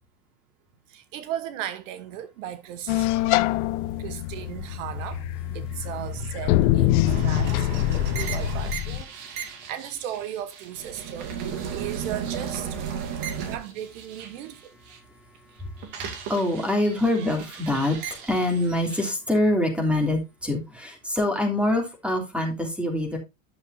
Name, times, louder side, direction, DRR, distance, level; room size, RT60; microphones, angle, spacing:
voice 1, 0.9-3.1 4.0-12.8 13.4-14.6, right 10 dB, 70° right, 1.2 m, -36 dB
sound 1, 2.9-9.0, left 15 dB, 65° left, 0.8 m, -25 dB
voice 2, 7.0-7.3 7.9-8.3 9.2-9.6 11.7-11.8 13.0-13.5 15.1-23.2, left 1 dB, 5° right, 2.9 m, -26 dB
sound 2, 7.0-15.0 15.3-19.1, right 7 dB, 50° right, 2.3 m, -35 dB
11.0 x 7.0 x 2.7 m
supercardioid pair, 140°, 40 cm